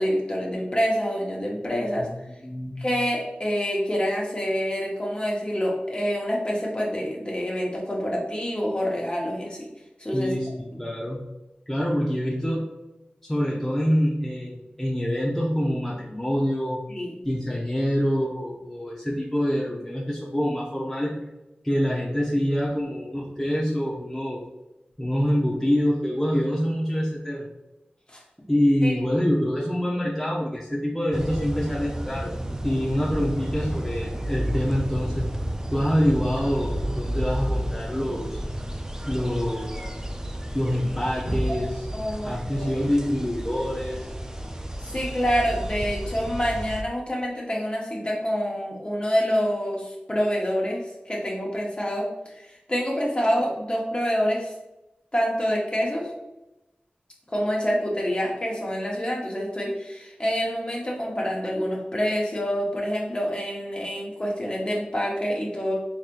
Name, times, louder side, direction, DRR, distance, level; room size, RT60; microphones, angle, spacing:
voice 1, 0.0-2.1 2.8-9.7 10.0-10.3 17.0-17.1 28.1-28.2 28.8-29.1 41.5-41.6 41.9-42.8 44.8-52.1 52.4-54.5 55.1-56.1 57.3-65.7, equal, 30° left, -2 dB, 1.1 m, -27 dB
voice 2, 2.4-2.9 10.1-11.2 11.7-12.7 13.2-16.8 17.2-21.1 21.6-24.4 25.0-27.5 28.5-32.3 32.6-35.3 35.7-38.4 39.1-39.9 40.5-41.9 42.2-44.1, equal, 5° left, -5 dB, 0.8 m, -26 dB
sound 1, 31.1-46.8, equal, 15° right, 0.4 m, -31 dB
4.1 x 3.1 x 2.5 m, 0.95 s
cardioid pair, 45°, 3 cm